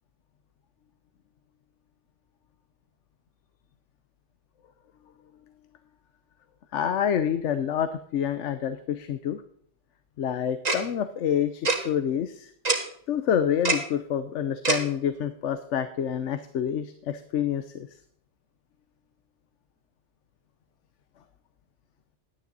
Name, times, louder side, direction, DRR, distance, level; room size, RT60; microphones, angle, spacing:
voice 1, 6.7-9.4 10.2-12.5 13.1-17.9, left 9 dB, 80° left, 11 dB, 1.1 m, -27 dB
Tick-tock, 10.6-10.8 11.6-11.8 12.6-12.8 13.6-13.8 14.6-14.8, right 3 dB, 35° right, 1.8 m, -23 dB
11.5 x 10.0 x 3.9 m, 0.64 s
omnidirectional pair, 1.2 m